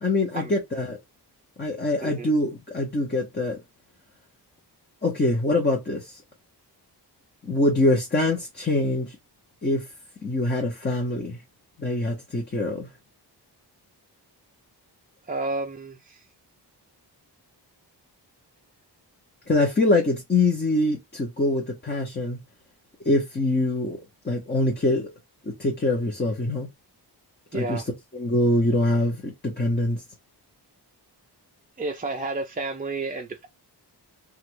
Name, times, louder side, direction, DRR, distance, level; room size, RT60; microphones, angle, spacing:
voice 1, 0.0-1.0 1.6-3.6 5.0-6.2 7.4-9.2 9.6-9.8 10.2-11.4 11.8-12.9 19.5-22.4 23.0-24.0 24.2-25.1 25.4-26.7 27.5-27.8 28.1-30.0, left 2 dB, 25° left, 0.8 m, -24 dB
voice 2, 15.3-16.2 27.5-27.8 31.8-33.5, right 3 dB, 20° right, 0.4 m, -31 dB
3.1 x 2.4 x 3.0 m
wide cardioid pair, 140°, 41 cm